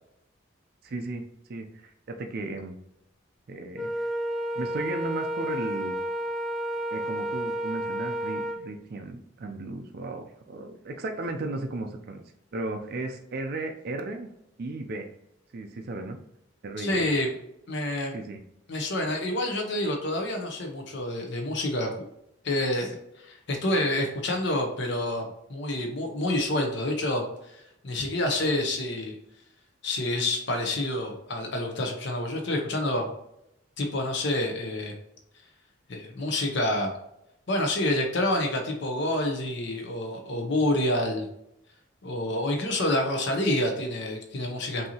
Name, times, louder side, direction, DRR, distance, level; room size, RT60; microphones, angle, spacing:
voice 1, 0.8-1.2 1.5-2.7 3.5-4.1 4.5-6.0 6.9-12.2 12.5-14.3 14.6-15.1 15.5-16.2 16.6-17.1 18.1-18.4, right 2 dB, 50° right, 4 dB, 0.4 m, -35 dB
Wind instrument woodwind instrument, 3.8-8.6, equal, ahead, 0.5 m, -31 dB
voice 2, 16.8-17.3 17.7-18.1 18.7-21.9 22.4-25.2 25.5-29.2 29.8-33.1 33.8-34.9 35.9-36.9 37.5-41.2 42.0-44.9, left 1 dB, 60° left, 3 dB, 0.7 m, -28 dB
5.4 x 2.7 x 2.8 m, 0.80 s
head